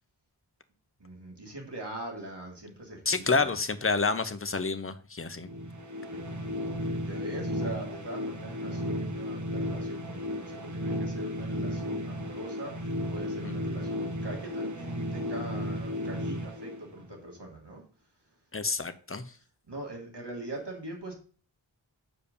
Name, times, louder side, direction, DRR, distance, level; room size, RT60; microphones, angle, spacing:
voice 1, 1.0-3.6 6.1-17.8 19.7-21.1, right 1 dB, 55° right, 0 dB, 3.1 m, -42 dB
voice 2, 3.1-5.5 13.4-13.5 18.5-19.2, left 4 dB, 25° left, 10 dB, 0.9 m, -29 dB
sound 1, 5.4-17.3, equal, 35° right, 1.2 m, -34 dB
6.8 x 5.0 x 6.9 m, 0.41 s
wide cardioid pair, 50°, 49 cm